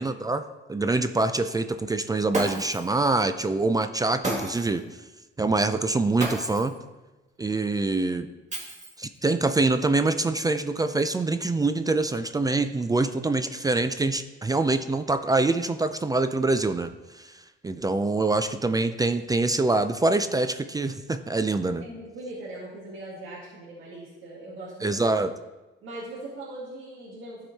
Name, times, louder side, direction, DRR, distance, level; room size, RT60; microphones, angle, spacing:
voice 1, 0.0-4.8 5.4-6.8 7.4-8.3 9.0-16.9 17.2-17.3 17.6-21.9 24.8-25.3, right 3 dB, 20° right, 10 dB, 0.4 m, -25 dB
Shatter, 2.3-2.9 4.2-4.8 6.2-6.8 8.5-9.2, right 2 dB, 35° right, 2.3 m, -32 dB
voice 2, 21.8-25.0 25.8-27.5, right 2 dB, 85° right, -7 dB, 2.1 m, -40 dB
12.0 x 4.9 x 4.1 m, 1.1 s
cardioid pair, 90°, 20 cm